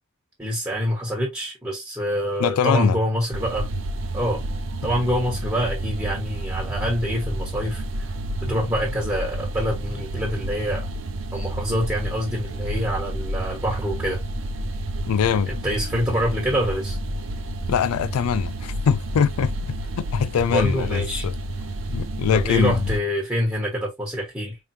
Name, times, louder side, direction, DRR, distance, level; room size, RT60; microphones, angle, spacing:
voice 1, 0.4-3.7 4.1-4.4 4.8-7.8 8.4-10.9 11.3-14.2 15.5-17.0 20.5-21.3 22.3-24.6, equal, 10° right, 1.3 m, -26 dB
voice 2, 2.4-3.0 15.1-15.5 17.7-19.5 20.0-21.4 21.9-22.8, left 7 dB, 90° left, 0.3 m, -22 dB
sound 1, 3.3-23.0, right 1 dB, 60° right, 0.7 m, -30 dB
4.9 x 3.0 x 2.6 m
head